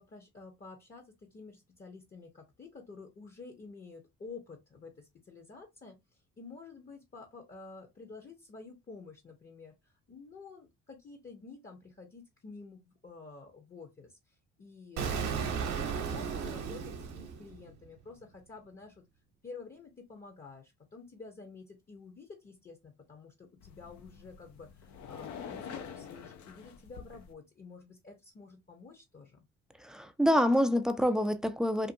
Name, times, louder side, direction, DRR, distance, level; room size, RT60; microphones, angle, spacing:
voice 1, 0.0-6.0 6.4-15.2 15.6-19.0 19.4-29.4, left 4 dB, 30° left, 0.8 m, -50 dB
Explosion, 15.0-17.9, right 6 dB, 60° right, 0.8 m, -35 dB
sound 1, 23.6-27.3, left 7 dB, 65° left, 0.6 m, -46 dB
voice 2, 29.8-31.9, equal, ahead, 0.4 m, -27 dB
2.6 x 2.5 x 2.6 m
hypercardioid pair, 55°, 31 cm